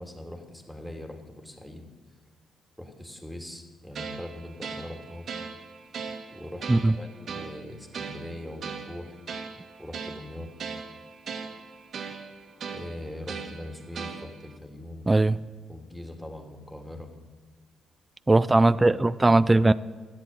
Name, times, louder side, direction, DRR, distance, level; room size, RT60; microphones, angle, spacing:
voice 1, 0.0-1.9 2.8-5.3 6.3-9.2 9.8-10.5 12.7-15.1 15.7-17.1, left 1 dB, ahead, 3 dB, 2.9 m, -41 dB
sound 1, 3.9-14.6, right 5 dB, 60° right, 1.7 m, -39 dB
voice 2, 15.1-15.4 18.3-19.7, right 2 dB, 15° right, 15 dB, 0.4 m, -19 dB
14.5 x 11.0 x 9.2 m, 1.4 s
cardioid pair, 90°, 0 cm